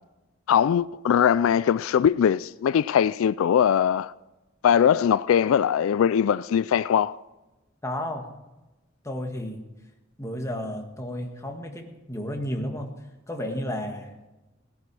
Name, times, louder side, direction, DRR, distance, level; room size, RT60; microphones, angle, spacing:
voice 1, 0.5-4.1 4.6-7.2, left 8 dB, 90° left, 0.3 m, -21 dB
voice 2, 7.8-8.3 9.0-9.6 10.2-12.9 13.3-14.1, left 1 dB, 15° left, 1.7 m, -32 dB
17.5 x 10.5 x 4.8 m
head